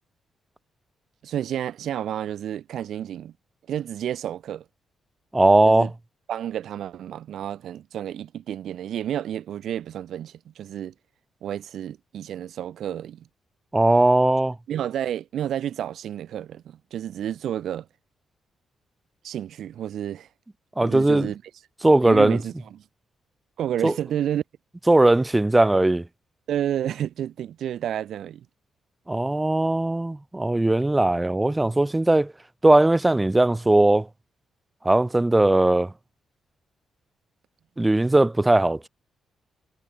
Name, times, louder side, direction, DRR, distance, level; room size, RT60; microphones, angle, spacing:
voice 1, 1.2-3.3 3.7-4.6 5.6-5.9 6.3-10.9 11.4-13.3 14.7-17.9 19.2-20.3 20.8-21.4 21.8-22.8 23.6-24.4 26.5-28.5, right 10 dB, 75° right, 1.9 m, -30 dB
voice 2, 5.3-5.9 13.7-14.6 20.8-21.3 21.8-22.4 23.8-23.9 24.9-26.0 29.1-32.3 32.6-34.1 34.8-35.9 37.8-38.9, right 2 dB, 15° right, 2.6 m, -19 dB
cardioid pair, 85°, 0 cm